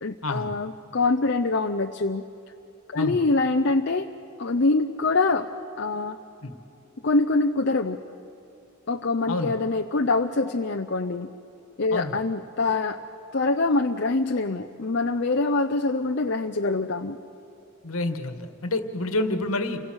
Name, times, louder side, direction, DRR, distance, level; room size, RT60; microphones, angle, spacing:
voice 1, 0.0-2.2 2.9-4.1 4.4-5.5 5.8-6.2 7.0-8.0 8.9-11.3 11.8-13.0 13.3-17.2, left 3 dB, 50° left, 4 dB, 0.7 m, -24 dB
voice 2, 17.8-19.8, left 2 dB, 70° left, 7 dB, 1.7 m, -28 dB
29.5 x 24.0 x 6.4 m, 2.8 s
head